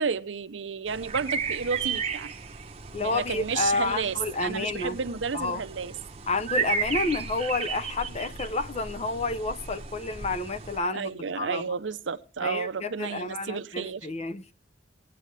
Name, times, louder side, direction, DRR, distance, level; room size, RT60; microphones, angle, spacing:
voice 1, 0.0-2.3 3.0-5.9 10.9-14.0, right 5 dB, 80° right, 0.7 m, -31 dB
sound 1, 0.9-10.8, right 6 dB, 35° right, 0.9 m, -34 dB
voice 2, 2.9-5.0 5.3-5.6 6.3-11.6 12.4-14.4, left 3 dB, 35° left, 0.7 m, -30 dB
21.5 x 8.5 x 3.3 m
head